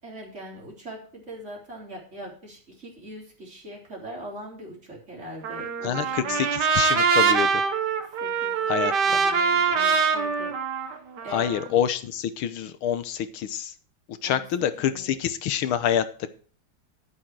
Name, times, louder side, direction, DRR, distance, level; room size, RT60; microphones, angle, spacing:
voice 1, 0.0-6.4 8.0-11.6 14.2-15.2, right 1 dB, 35° right, -2 dB, 4.0 m, -42 dB
Trumpet, 5.4-11.7, right 5 dB, 60° right, 1.7 m, -24 dB
voice 2, 5.8-7.6 8.7-8.9 11.3-13.7 14.1-16.0, left 9 dB, 80° left, 12 dB, 1.7 m, -26 dB
11.5 x 8.8 x 4.7 m, 0.41 s
omnidirectional pair, 2.3 m